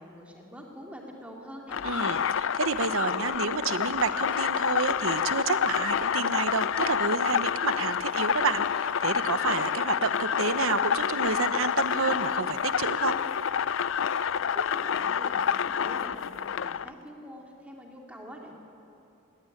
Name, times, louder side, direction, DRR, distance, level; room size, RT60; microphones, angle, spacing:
voice 1, 0.0-1.9 14.2-18.5, equal, 5° right, -1 dB, 2.5 m, -45 dB
sound 1, 1.7-16.9, left 7 dB, 65° left, 0.4 m, -28 dB
voice 2, 1.8-13.2, right 4 dB, 75° right, 11 dB, 0.9 m, -30 dB
18.5 x 18.0 x 9.9 m, 2.8 s
head